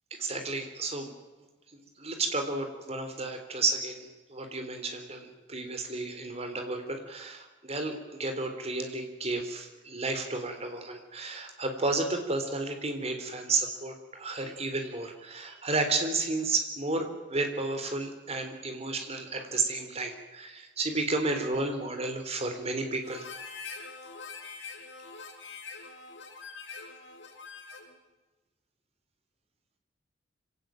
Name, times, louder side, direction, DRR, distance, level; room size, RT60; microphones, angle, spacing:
voice 1, 0.1-1.1 1.7-23.3, right 3 dB, 35° right, 6 dB, 3.8 m, -32 dB
Harmonica, 23.0-27.9, left 4 dB, 75° left, 4.4 m, -44 dB
26.0 x 17.5 x 9.2 m, 1.2 s
head